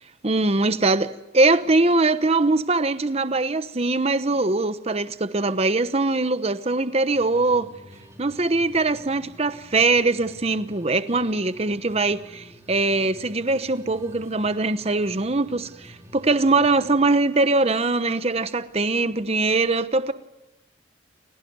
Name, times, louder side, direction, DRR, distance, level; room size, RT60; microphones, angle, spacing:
voice 1, 0.2-7.7 8.2-20.1, right 3 dB, 35° right, 1.0 m, -22 dB
sound 1, 7.1-16.9, equal, 15° right, 4.9 m, -48 dB
29.5 x 17.5 x 9.5 m
head